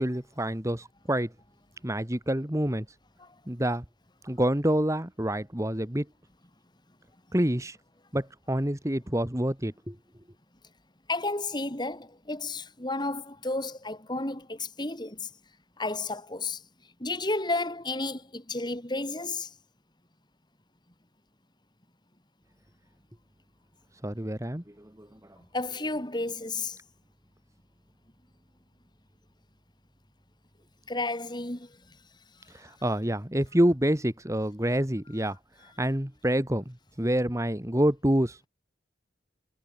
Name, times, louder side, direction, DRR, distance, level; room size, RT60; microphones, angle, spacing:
voice 1, 0.0-1.3 1.8-2.9 3.5-3.8 4.2-6.1 7.3-7.8 8.1-10.0 24.0-25.2 32.5-35.4 35.8-38.5, right 1 dB, 15° right, 1.9 m, -27 dB
voice 2, 11.1-15.3 15.8-16.6 17.0-19.5 25.5-26.8 30.9-31.8, left 2 dB, 25° left, 3.9 m, -32 dB
head